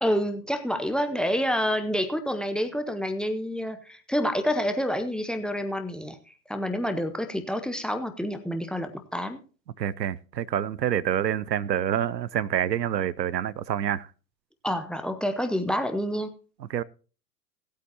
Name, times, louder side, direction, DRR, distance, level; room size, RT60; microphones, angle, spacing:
voice 1, 0.0-6.2 6.5-9.4 14.6-16.3, equal, ahead, 0.7 m, -28 dB
voice 2, 9.8-14.1 16.7-16.8, right 10 dB, 90° right, 0.7 m, -27 dB
18.0 x 8.3 x 2.9 m
hypercardioid pair, 105°, 49 cm